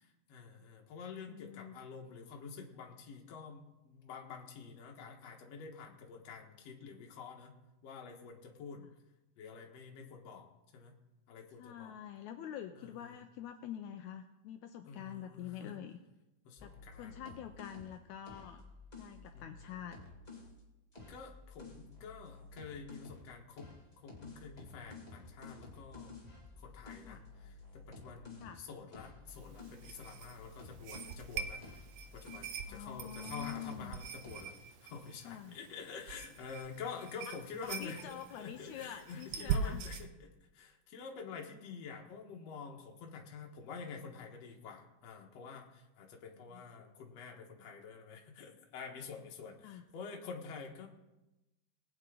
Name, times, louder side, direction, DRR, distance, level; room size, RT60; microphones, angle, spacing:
voice 1, 0.3-7.6 7.8-8.8 9.4-10.5 10.7-10.9 11.3-12.0 12.7-13.2 14.8-15.8 16.4-17.4 19.3-19.5 21.1-23.7 24.0-26.1 26.6-31.8 32.1-50.9, left 5 dB, 60° left, 1 dB, 2.3 m, -48 dB
voice 2, 1.3-1.7 8.7-8.9 11.6-16.0 16.6-16.7 17.0-18.6 19.0-20.0 27.1-27.2 28.4-28.6 32.7-34.0 35.2-35.6 37.3-37.4 37.6-39.8 46.5-46.8 49.6-49.8, left 10 dB, 85° left, 7 dB, 1.7 m, -46 dB
sound 1, 16.6-20.5 20.9-23.3 23.6-31.3 31.6-34.0 34.2-34.6, left 3 dB, 15° left, 1.8 m, -53 dB
sound 2, 29.3-40.1, right 6 dB, 90° right, 1.4 m, -43 dB
20.0 x 8.8 x 3.8 m, 0.99 s
omnidirectional pair, 3.9 m